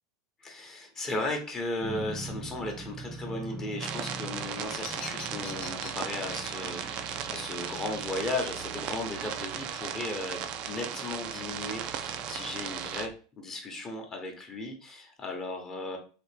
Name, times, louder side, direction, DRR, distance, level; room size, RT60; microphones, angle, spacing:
voice 1, 0.4-16.0, left 2 dB, 25° left, 2 dB, 0.9 m, -36 dB
sound 1, 1.8-13.1, right 2 dB, 10° right, 0.6 m, -44 dB
sound 2, 3.8-13.1, right 9 dB, 45° right, 0.4 m, -36 dB
Bird vocalization bird call bird song, 4.3-10.3, left 6 dB, 50° left, 0.6 m, -49 dB
3.3 x 2.5 x 3.3 m, 0.37 s
hypercardioid pair, 115°, 2 cm